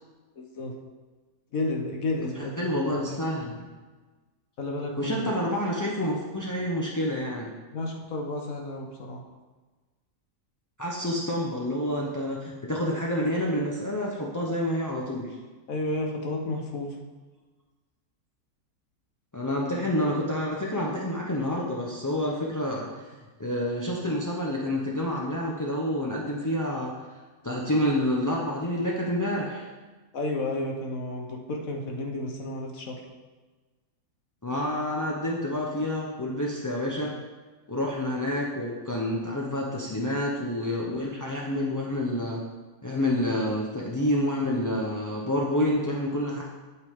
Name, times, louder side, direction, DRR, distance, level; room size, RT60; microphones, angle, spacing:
voice 1, 0.4-0.7 1.5-3.2 4.6-5.3 7.7-9.2 15.7-17.0 30.1-33.0, left 2 dB, 60° left, 1 dB, 1.4 m, -32 dB
voice 2, 2.4-3.7 5.0-7.5 10.8-15.4 19.3-26.9 27.4-29.7 34.4-37.1 37.7-42.4 42.8-46.4, left 1 dB, 20° left, -4 dB, 0.4 m, -28 dB
8.2 x 8.0 x 3.6 m, 1.3 s
omnidirectional pair, 1.7 m